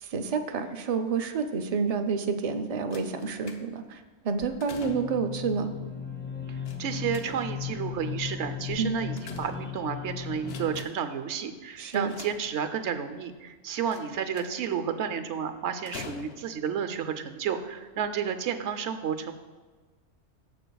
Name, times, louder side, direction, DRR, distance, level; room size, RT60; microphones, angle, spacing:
voice 1, 0.0-5.7 8.8-9.0 11.8-12.1, right 5 dB, 45° right, 6 dB, 0.5 m, -29 dB
sound 1, 2.9-3.9 4.4-5.3 6.7-7.7 8.7-10.0 10.4-11.2 11.9-12.9 13.9-14.7 15.9-16.7 17.5-17.6 18.0-18.1, left 6 dB, 60° left, 0.8 m, -46 dB
sound 2, 4.8-10.8, left 7 dB, 15° left, 0.5 m, -36 dB
voice 2, 6.5-19.3, right 7 dB, 75° right, 9 dB, 1.0 m, -31 dB
15.5 x 6.3 x 2.3 m, 1.3 s
omnidirectional pair, 1.2 m